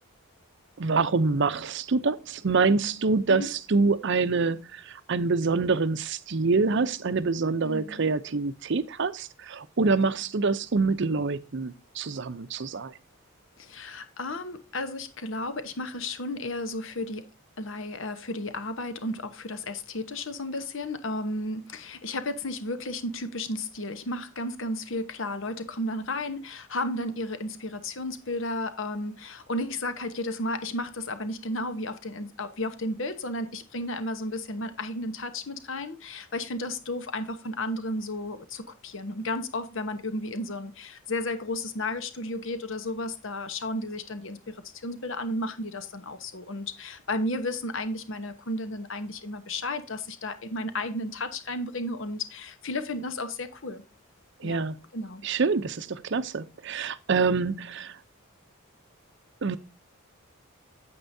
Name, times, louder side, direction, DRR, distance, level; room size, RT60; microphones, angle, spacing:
voice 1, 0.8-12.9 54.4-54.8 55.2-58.0 59.4-59.6, right 4 dB, 55° right, 0.6 m, -26 dB
voice 2, 7.6-8.0 13.6-17.3 17.6-53.8 54.4-54.6 54.9-55.2, left 1 dB, 60° left, 1.0 m, -33 dB
9.2 x 8.0 x 2.7 m
head